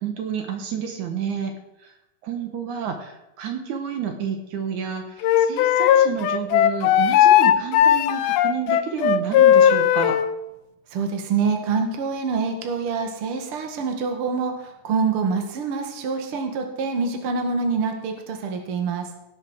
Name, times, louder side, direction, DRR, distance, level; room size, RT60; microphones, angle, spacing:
voice 1, 0.0-1.5 1.8-1.9 2.2-10.2, right 7 dB, 70° right, 5 dB, 2.7 m, -30 dB
Wind instrument woodwind instrument, 5.2-10.3, left 10 dB, 90° left, 2.3 m, -17 dB
voice 2, 10.9-19.1, right 5 dB, 50° right, 4 dB, 2.4 m, -26 dB
17.5 x 7.2 x 6.3 m, 0.93 s
omnidirectional pair, 3.7 m